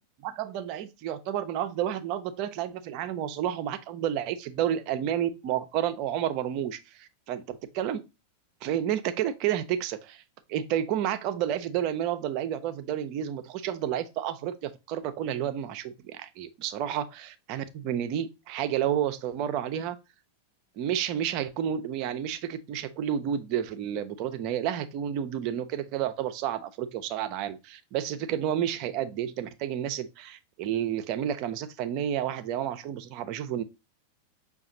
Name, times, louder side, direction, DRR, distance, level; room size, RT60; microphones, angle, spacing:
voice 1, 0.2-8.0 8.6-10.2 10.5-20.0 20.8-33.6, right 10 dB, 40° right, 0.5 m, -30 dB
5.7 x 2.3 x 3.7 m
figure-of-eight pair, 90°, 0 cm